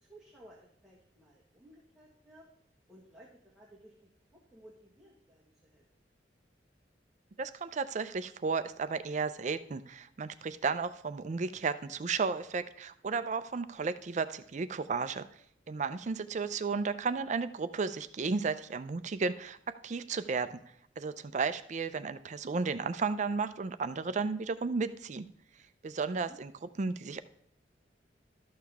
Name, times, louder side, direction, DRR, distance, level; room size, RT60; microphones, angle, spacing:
voice 1, 0.0-2.4 2.9-5.8 16.5-16.6 26.3-26.4, right 1 dB, 5° right, -7 dB, 1.6 m, -57 dB
voice 2, 7.4-15.3 15.7-20.6 21.0-25.3 25.8-26.5 26.8-27.2, right 4 dB, 40° right, 12 dB, 0.4 m, -33 dB
12.5 x 6.6 x 3.4 m, 0.71 s
head